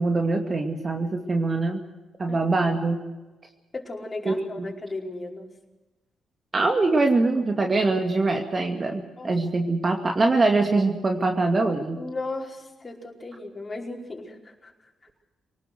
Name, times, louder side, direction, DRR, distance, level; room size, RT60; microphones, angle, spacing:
voice 1, 0.0-1.8 2.2-3.0 4.2-4.7 6.5-12.0, right 3 dB, 40° right, 4 dB, 2.4 m, -23 dB
voice 2, 3.7-5.5 9.2-9.3 11.9-14.7, left 2 dB, 30° left, -1 dB, 5.1 m, -36 dB
23.5 x 19.0 x 6.6 m, 1.1 s
hypercardioid pair, 45°, 0 cm